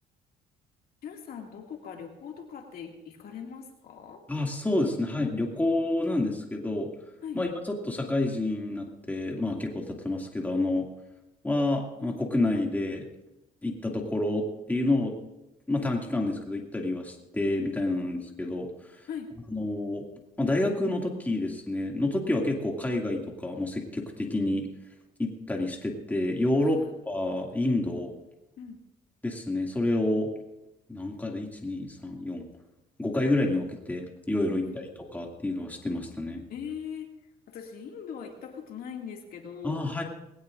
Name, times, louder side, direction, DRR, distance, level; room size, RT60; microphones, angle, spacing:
voice 1, 1.0-4.2 7.2-7.4 17.9-18.0 19.1-19.3 26.6-26.9 28.6-28.8 34.5-34.8 36.5-37.1 37.5-40.0, left 7 dB, 60° left, 2 dB, 2.2 m, -40 dB
voice 2, 4.3-6.9 7.3-10.9 11.4-13.0 13.6-15.1 15.7-18.7 19.5-20.0 20.4-24.7 25.2-26.8 27.1-28.1 29.2-30.3 30.9-32.5 33.0-34.8 35.1-36.4 39.6-40.0, left 2 dB, 10° left, 0 dB, 2.3 m, -28 dB
20.0 x 18.0 x 2.6 m, 0.93 s
cardioid pair, 110°, 17 cm